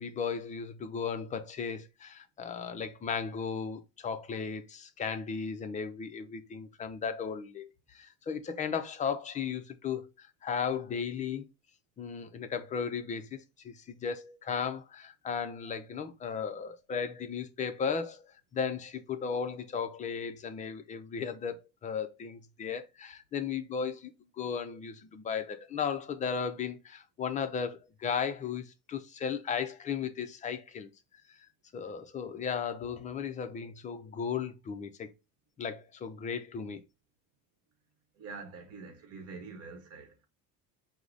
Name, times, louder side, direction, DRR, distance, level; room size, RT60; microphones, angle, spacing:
voice 1, 0.0-11.5 12.0-24.1 24.4-30.9 31.7-35.1 35.6-36.8, left 6 dB, 25° left, 0.4 m, -35 dB
voice 2, 38.1-40.2, right 4 dB, 45° right, 1.0 m, -45 dB
4.6 x 2.1 x 3.8 m
cardioid pair, 150°, 33 cm